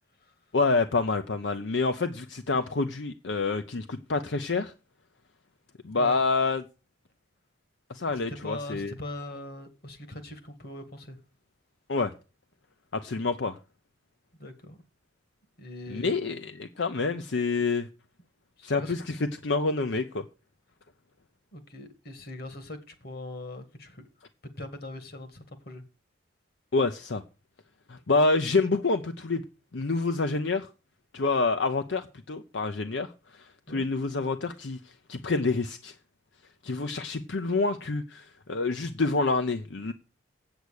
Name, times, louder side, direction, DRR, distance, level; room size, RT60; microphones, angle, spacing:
voice 1, 0.5-4.7 5.8-6.6 7.9-8.9 11.9-12.1 12.9-13.6 15.9-17.9 18.6-20.2 26.7-27.2 27.9-29.4 29.7-30.7 31.1-34.8 35.1-35.9 36.6-39.9, left 3 dB, 75° left, 0.7 m, -27 dB
voice 2, 8.3-11.2 14.4-14.8 15.6-16.2 18.6-19.0 21.5-24.0 24.6-25.8 33.7-33.9, left 1 dB, 55° left, 1.9 m, -41 dB
8.3 x 8.0 x 6.5 m
head